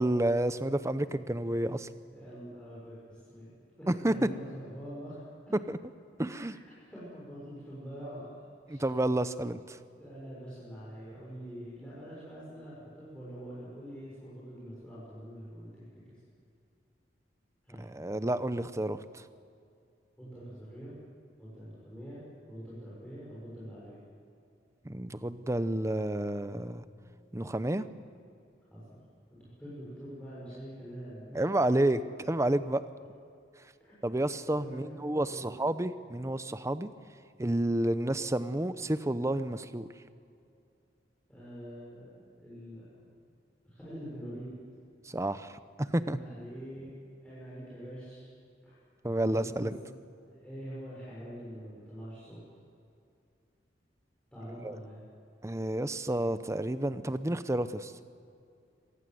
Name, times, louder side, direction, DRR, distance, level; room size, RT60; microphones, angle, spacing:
voice 1, 0.0-1.9 3.9-4.1 5.7-5.8 6.2-6.6 8.7-9.8 17.8-19.0 24.8-26.8 27.3-27.8 31.3-32.0 32.3-32.8 34.0-36.9 37.4-39.9 45.1-45.5 45.9-46.2 49.0-49.8 54.6-54.8 55.4-57.9, right 1 dB, 15° right, 13 dB, 0.8 m, -30 dB
voice 2, 2.1-5.6 6.3-8.8 10.0-16.2 17.6-17.8 20.2-21.0 21.4-23.9 28.7-29.0 29.3-31.4 33.8-33.9 34.5-35.6 37.7-37.8 41.3-42.9 43.6-44.6 46.0-48.3 48.6-48.7 49.3-49.8 50.2-52.4 54.3-55.0, equal, 5° left, -9 dB, 6.7 m, -45 dB
26.0 x 18.5 x 7.9 m, 2.5 s
head